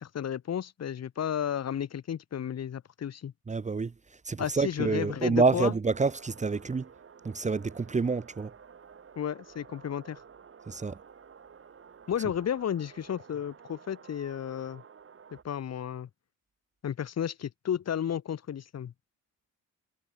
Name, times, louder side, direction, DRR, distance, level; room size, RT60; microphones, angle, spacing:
voice 1, 0.0-3.3 4.4-5.7 9.1-10.2 12.1-14.8 15.4-16.1 16.8-18.9, left 9 dB, 55° left, 3.4 m, -33 dB
voice 2, 3.5-3.9 4.2-6.9 7.2-8.5 10.7-11.0, right 4 dB, 25° right, 1.1 m, -28 dB
sound 1, 5.9-15.4, right 6 dB, 45° right, 6.2 m, -52 dB
cardioid pair, 90°, 30 cm